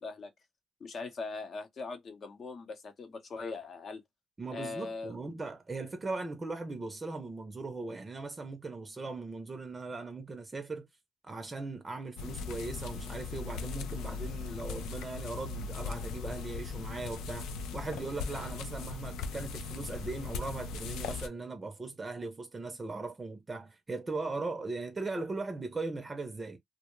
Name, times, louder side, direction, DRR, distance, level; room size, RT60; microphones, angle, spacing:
voice 1, 0.8-4.0 4.5-5.2, left 4 dB, 50° left, 0.7 m, -40 dB
voice 2, 4.4-10.9 11.2-26.6, right 3 dB, 25° right, 0.5 m, -39 dB
sound 1, 12.2-21.3, left 5 dB, 90° left, 0.4 m, -39 dB
2.2 x 2.1 x 3.0 m
cardioid pair, 90°, 0 cm